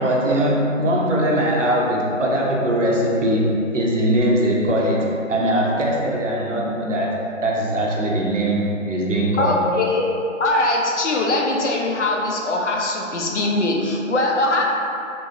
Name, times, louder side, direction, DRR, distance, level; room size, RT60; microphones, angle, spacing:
voice 1, 0.0-9.6, right 1 dB, 65° right, -2 dB, 0.7 m, -21 dB
voice 2, 9.4-14.6, left 2 dB, 60° left, -1 dB, 0.5 m, -21 dB
2.9 x 2.5 x 2.7 m, 2.7 s
figure-of-eight pair, 170°, 40 cm